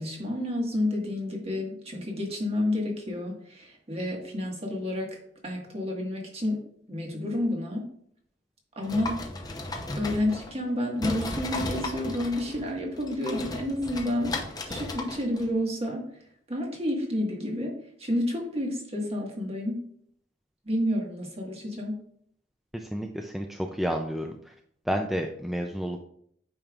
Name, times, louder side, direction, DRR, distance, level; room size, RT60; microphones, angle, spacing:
voice 1, 0.0-5.2 5.4-6.6 6.9-7.9 8.7-9.2 10.0-16.1 16.5-19.9 20.6-22.0, left 1 dB, 35° right, -1 dB, 1.6 m, -30 dB
sound 1, 8.8-10.7 11.0-15.5, left 2 dB, 20° left, 0.7 m, -35 dB
voice 2, 22.7-24.5 24.9-26.0, equal, ahead, 3 dB, 0.4 m, -31 dB
8.7 x 5.2 x 2.4 m, 0.66 s
head